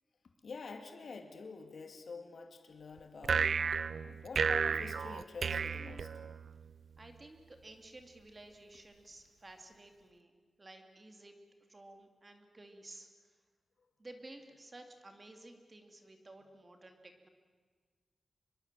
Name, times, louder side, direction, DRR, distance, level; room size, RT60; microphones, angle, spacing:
voice 1, 0.4-3.5 4.0-6.1, left 4 dB, 60° left, 5 dB, 2.3 m, -47 dB
Jews Harp- Take me to your leader, 3.2-6.7, right 6 dB, 70° right, 0.7 m, -33 dB
voice 2, 7.0-10.3 10.6-11.4 11.7-13.1 14.0-17.3, right 2 dB, 25° right, 5 dB, 2.4 m, -54 dB
25.0 x 22.5 x 7.5 m, 1.5 s
wide cardioid pair, 175°, 0 cm